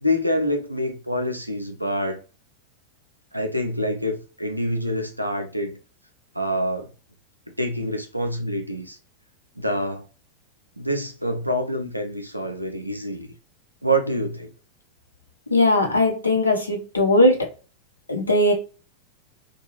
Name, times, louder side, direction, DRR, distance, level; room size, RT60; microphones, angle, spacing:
voice 1, 0.0-2.2 3.3-5.8 6.3-6.9 7.6-9.0 9.6-10.1 10.8-13.3 13.8-14.5, equal, 90° right, 0.5 m, -26 dB
voice 2, 15.5-17.5 18.1-18.5, left 1 dB, 80° left, 0.7 m, -19 dB
2.6 x 2.2 x 2.9 m
figure-of-eight pair, 90°, 0 cm